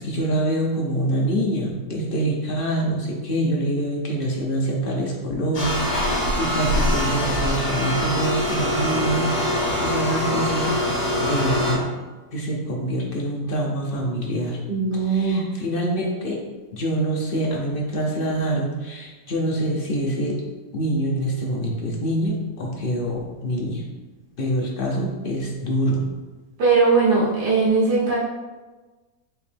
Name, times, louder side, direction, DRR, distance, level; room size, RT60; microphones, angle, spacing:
voice 1, 0.0-10.8 11.2-11.9 12.3-14.6 15.0-16.4 16.7-20.4 20.7-23.8 24.4-26.0, right 1 dB, 55° left, -2 dB, 0.6 m, -25 dB
sound 1, 5.5-11.7, left 1 dB, 80° left, 2.3 m, -23 dB
voice 2, 14.7-15.4 26.6-28.2, right 4 dB, 80° right, -7 dB, 1.8 m, -19 dB
4.8 x 3.1 x 3.3 m, 1.2 s
omnidirectional pair, 1.7 m